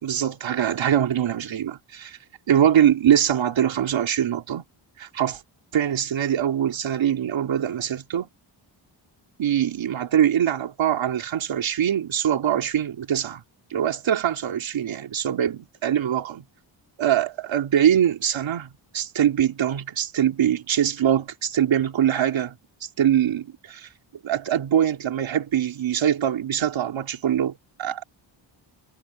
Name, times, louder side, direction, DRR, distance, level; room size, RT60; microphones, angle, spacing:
voice 1, 0.0-2.2 2.5-4.6 5.0-5.4 5.7-8.3 9.4-13.4 13.7-16.4 17.0-22.5 22.8-23.9 24.2-28.0, right 10 dB, 75° right, 3.1 m, -23 dB
wide cardioid pair, 140°, 46 cm